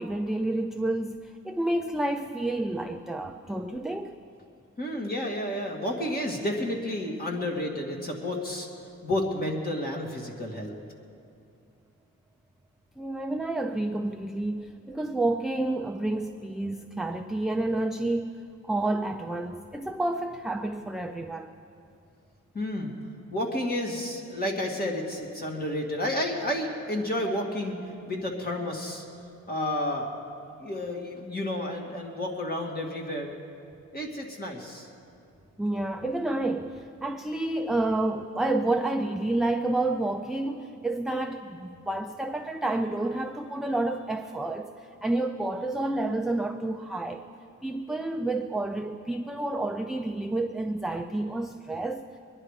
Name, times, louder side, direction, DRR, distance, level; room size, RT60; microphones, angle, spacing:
voice 1, 0.0-4.2 13.0-21.5 35.6-44.7 45.0-47.3 47.6-52.1, right 2 dB, ahead, 4 dB, 0.4 m, -29 dB
voice 2, 4.8-8.7 9.0-10.7 22.5-22.9 23.3-27.8 28.1-29.0 29.5-30.1 30.6-33.3 33.9-34.9, left 1 dB, 30° left, 0 dB, 2.2 m, -31 dB
23.5 x 10.5 x 4.9 m, 2.5 s
wide cardioid pair, 135°, 31 cm